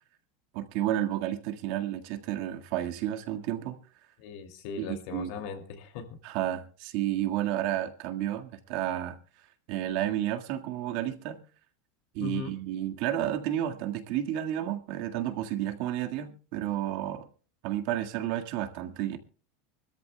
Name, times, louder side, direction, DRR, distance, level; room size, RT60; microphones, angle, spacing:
voice 1, 0.5-3.8 4.8-5.3 6.2-9.2 9.7-11.4 12.1-17.3 17.6-19.2, right 12 dB, 60° right, 1.6 m, -31 dB
voice 2, 4.2-6.2 12.2-12.5, left 6 dB, 65° left, 2.4 m, -38 dB
24.5 x 13.5 x 2.2 m
supercardioid pair, 125°, 0 cm